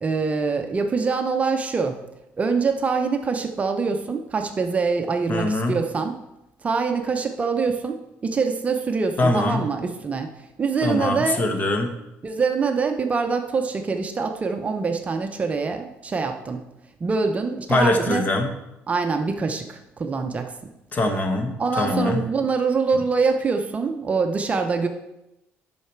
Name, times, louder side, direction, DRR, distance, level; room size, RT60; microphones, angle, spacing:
voice 1, 0.0-2.0 2.4-6.2 6.6-10.3 10.6-11.5 12.2-16.6 17.0-18.3 18.9-20.5 21.6-24.9, right 4 dB, 25° right, 5 dB, 0.6 m, -24 dB
voice 2, 5.3-5.8 9.2-9.7 10.8-11.9 17.7-18.5 20.9-22.2, left 2 dB, 35° left, 5 dB, 1.1 m, -23 dB
8.4 x 5.7 x 4.5 m, 0.92 s
cardioid pair, 125°, 5 cm